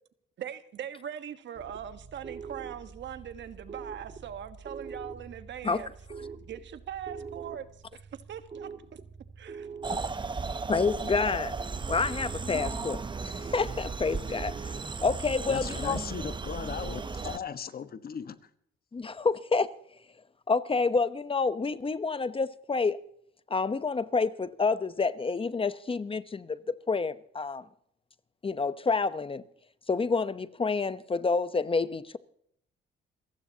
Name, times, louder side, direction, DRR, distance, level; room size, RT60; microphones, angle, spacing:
voice 1, 0.4-5.9 6.4-7.7 7.9-8.7 9.4-9.7, right 9 dB, 65° right, 1.4 m, -41 dB
sound 1, 1.5-15.0, right 5 dB, 40° right, 1.6 m, -46 dB
sound 2, 9.8-17.4, right 4 dB, 25° right, 0.8 m, -35 dB
voice 2, 10.7-11.5 11.9-14.7 15.0-16.0 18.9-19.8 20.5-23.0 23.5-27.6 28.4-29.4 29.9-32.2, left 4 dB, 25° left, 0.9 m, -28 dB
voice 3, 15.5-18.4, left 7 dB, 50° left, 1.3 m, -37 dB
28.0 x 15.5 x 2.9 m
cardioid pair, 90°, 20 cm